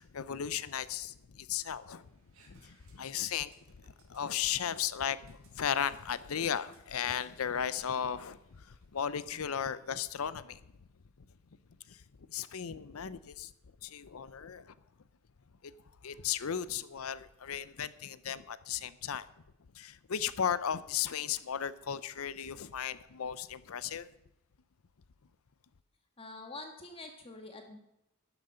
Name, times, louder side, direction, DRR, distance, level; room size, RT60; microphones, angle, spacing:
voice 1, 0.0-2.1 2.5-3.5 4.1-10.6 11.9-12.0 12.3-13.5 13.8-14.7 15.6-15.7 16.0-19.3 19.8-24.1, left 8 dB, 80° left, 0.6 m, -35 dB
sound 1, 2.0-8.9, right 3 dB, 80° right, 4.5 m, -65 dB
voice 2, 26.2-27.8, left 2 dB, 25° left, 1.5 m, -46 dB
12.0 x 10.5 x 5.6 m
head